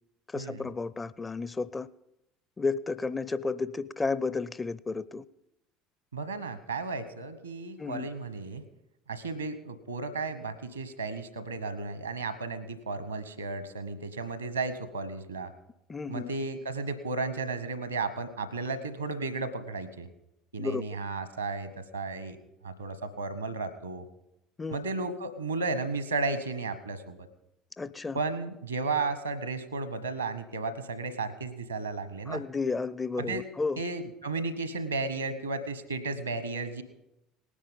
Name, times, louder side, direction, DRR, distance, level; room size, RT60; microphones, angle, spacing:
voice 1, 0.3-1.9 2.6-5.2 7.8-8.1 15.9-16.3 20.6-20.8 24.6-24.8 27.8-28.2 32.3-33.8, left 4 dB, 20° left, 0.5 m, -32 dB
voice 2, 6.1-8.6 9.1-15.5 16.1-20.1 20.5-22.4 22.6-24.1 24.7-27.2 28.1-32.4 33.2-33.5 33.8-36.8, right 3 dB, 85° right, 1.1 m, -34 dB
18.5 x 10.0 x 5.3 m
figure-of-eight pair, 65°, 0 cm